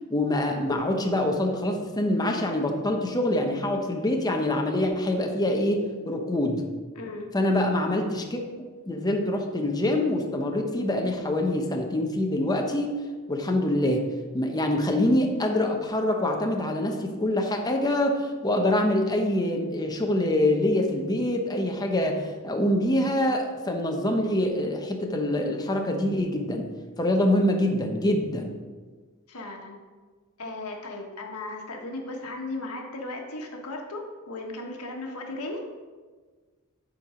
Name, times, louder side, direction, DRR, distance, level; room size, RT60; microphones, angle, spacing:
voice 1, 0.1-6.6 7.3-8.4 8.9-12.9 13.3-14.0 14.3-26.7 27.0-28.5, left 1 dB, 20° left, 2 dB, 0.9 m, -25 dB
voice 2, 6.9-7.3 29.3-29.8 30.4-35.6, left 2 dB, 80° left, 1 dB, 1.4 m, -36 dB
10.5 x 4.6 x 5.1 m, 1.4 s
head